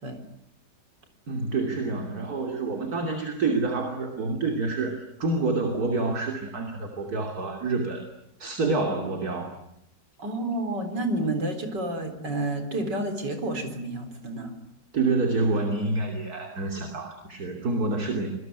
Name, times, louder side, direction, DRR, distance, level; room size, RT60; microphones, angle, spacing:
voice 1, 1.3-8.1 8.4-9.5 14.9-18.3, right 3 dB, 60° right, 3 dB, 3.4 m, -27 dB
voice 2, 10.2-14.5, right 1 dB, 75° right, 7 dB, 4.7 m, -30 dB
26.5 x 20.5 x 9.6 m, 0.79 s
omnidirectional pair, 1.9 m